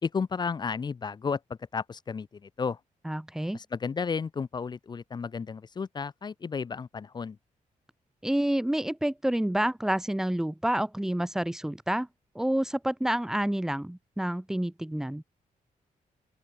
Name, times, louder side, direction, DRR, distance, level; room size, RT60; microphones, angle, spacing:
voice 1, 0.0-2.8 3.5-7.4, left 5 dB, 30° left, 1.8 m, -33 dB
voice 2, 3.0-3.6 8.2-12.1 12.3-15.2, right 1 dB, 5° right, 1.4 m, -28 dB
open air
wide cardioid pair, 180°, 14 cm